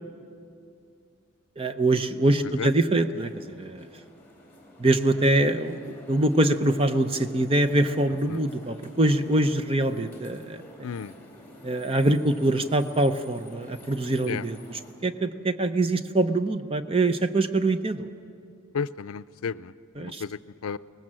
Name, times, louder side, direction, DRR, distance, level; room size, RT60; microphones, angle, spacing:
voice 1, 1.6-3.9 4.8-10.6 11.6-18.1 20.0-20.2, right 2 dB, 25° right, 10 dB, 0.7 m, -24 dB
sound 1, 2.5-14.9, left 1 dB, 10° left, 3.2 m, -49 dB
voice 2, 10.8-11.1 14.3-14.4 18.7-20.8, left 6 dB, 90° left, 16 dB, 0.5 m, -33 dB
23.0 x 19.0 x 7.5 m, 2.5 s
head